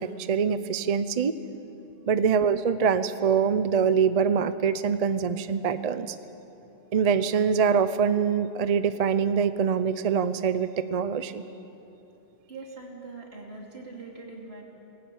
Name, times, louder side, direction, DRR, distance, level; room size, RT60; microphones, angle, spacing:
voice 1, 0.0-1.3 2.1-6.2 6.9-11.4, right 6 dB, 45° right, 12 dB, 0.5 m, -24 dB
voice 2, 12.5-14.6, right 3 dB, 70° right, -1 dB, 3.2 m, -42 dB
20.0 x 18.0 x 8.5 m, 3.0 s
omnidirectional pair, 1.1 m